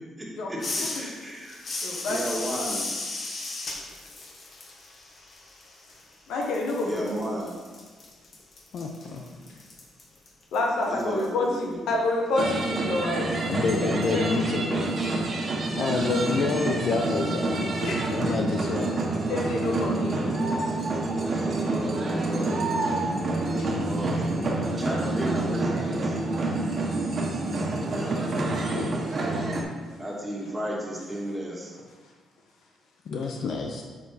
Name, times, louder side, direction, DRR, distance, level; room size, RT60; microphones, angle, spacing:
voice 1, 0.2-1.6 2.0-2.9 6.8-7.6 10.8-11.8 21.2-26.2 26.5-26.6 29.3-31.7, equal, 10° right, -4 dB, 2.2 m, -35 dB
sound 1, 0.6-6.1 6.4-11.3, left 2 dB, 45° left, 1.5 m, -36 dB
voice 2, 1.8-2.2 6.3-7.2 10.5-13.4 13.8-14.3 17.8-18.1 19.3-20.3 23.6-23.7 27.2-27.3, left 2 dB, 80° left, -1 dB, 1.5 m, -28 dB
voice 3, 8.7-9.2 13.1-17.7 18.1-19.1 28.4-29.0 33.1-33.8, left 4 dB, 65° left, 2 dB, 0.8 m, -29 dB
sound 2, 12.4-29.6, right 2 dB, 45° right, 1.5 m, -27 dB
7.2 x 6.2 x 4.2 m, 1.4 s
cardioid pair, 90°, 0 cm